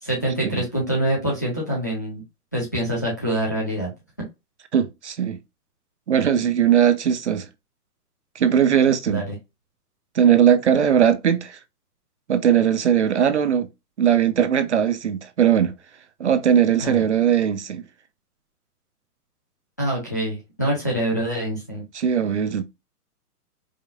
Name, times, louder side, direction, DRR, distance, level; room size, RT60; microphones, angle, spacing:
voice 1, 0.0-2.2 2.5-3.9 9.1-9.2 16.8-17.0 19.8-21.8, right 1 dB, 10° left, 0.5 m, -25 dB
voice 2, 4.7-5.4 6.1-7.5 8.4-9.2 10.2-11.6 12.3-13.7 14.0-15.7 16.2-17.8 21.9-22.6, right 9 dB, 50° right, 0.5 m, -19 dB
4.8 x 2.3 x 2.6 m
hypercardioid pair, 170°, 46 cm